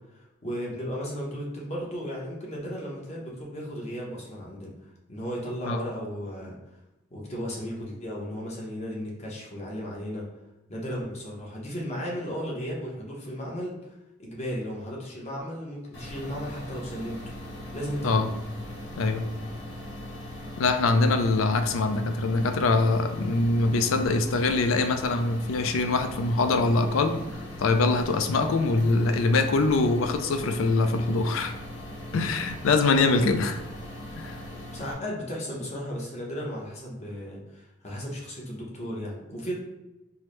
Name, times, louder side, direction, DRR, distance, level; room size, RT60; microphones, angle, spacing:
voice 1, 0.1-4.7 5.1-6.6 7.1-10.2 10.7-17.2 17.7-18.2 34.7-39.5, equal, 35° left, -3 dB, 0.9 m, -35 dB
sound 1, 15.9-34.9, left 1 dB, 60° left, 0.8 m, -40 dB
voice 2, 20.6-27.2 27.6-31.5 32.1-33.6 34.2-34.4, left 3 dB, 90° left, 8 dB, 0.4 m, -23 dB
4.6 x 2.0 x 3.1 m, 0.95 s
head